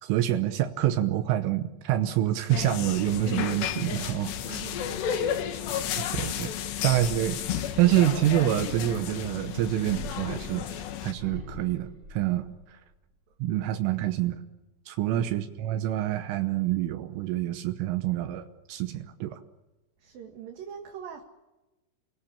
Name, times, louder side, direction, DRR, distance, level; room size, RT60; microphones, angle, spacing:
voice 1, 0.0-4.6 6.1-6.5 6.8-10.7 11.0-12.8 13.4-14.4 14.9-19.4, right 13 dB, 85° right, 7 dB, 3.6 m, -27 dB
sound 1, 2.5-11.1, left 9 dB, 65° left, 3.5 m, -32 dB
voice 2, 4.3-5.4 15.0-15.2 20.0-21.2, right 8 dB, 55° right, 3 dB, 3.0 m, -44 dB
sound 2, 9.8-12.9 13.3-13.9, equal, 25° right, 6.1 m, -45 dB
29.5 x 20.5 x 8.8 m, 1.1 s
omnidirectional pair, 5.6 m